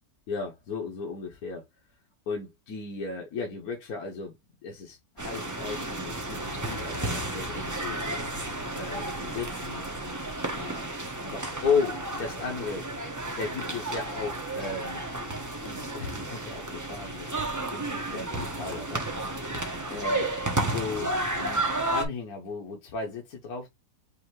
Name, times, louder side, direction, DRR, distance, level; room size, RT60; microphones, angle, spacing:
voice 1, 0.3-1.7 2.3-8.0 8.8-9.9 10.6-10.8 11.2-12.9 13.4-15.0 15.6-19.1 19.9-21.1 21.4-23.7, left 5 dB, 65° left, 1.5 m, -35 dB
sound 1, 5.2-22.1, right 2 dB, 15° right, 0.6 m, -32 dB
5.5 x 2.7 x 3.1 m
omnidirectional pair, 1.8 m